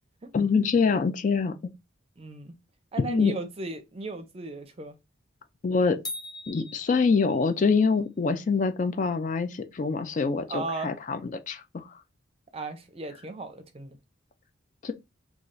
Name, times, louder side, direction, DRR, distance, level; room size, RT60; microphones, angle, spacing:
voice 1, 0.3-1.7 3.0-3.3 5.6-6.0 6.5-12.0 14.8-14.9, left 4 dB, 40° left, 0.3 m, -25 dB
voice 2, 2.2-2.5 2.9-5.0 10.5-11.0 12.5-14.0, right 3 dB, 30° right, 0.6 m, -36 dB
sound 1, 6.0-7.6, left 2 dB, 20° left, 0.9 m, -40 dB
3.2 x 2.4 x 3.8 m
head